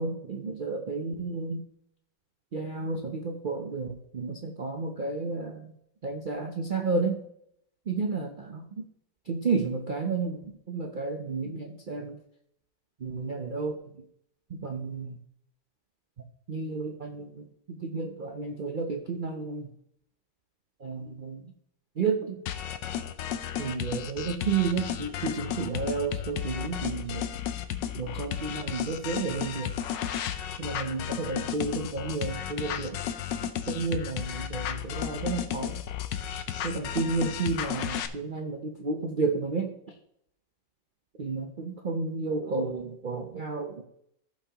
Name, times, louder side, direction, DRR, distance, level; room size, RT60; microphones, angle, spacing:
voice 1, 0.0-1.6 2.5-5.7 6.0-7.2 7.9-8.8 9.3-12.2 13.0-13.8 14.6-15.2 16.5-17.5 17.8-19.7 20.8-21.4 22.0-22.4 23.6-27.2 28.0-29.7 30.6-33.0 33.7-35.7 36.6-39.9 41.2-43.8, right 4 dB, 75° right, 3 dB, 0.4 m, -31 dB
sound 1, 22.5-38.1, left 10 dB, 85° left, 1.3 m, -33 dB
15.0 x 5.7 x 2.9 m, 0.73 s
omnidirectional pair, 1.9 m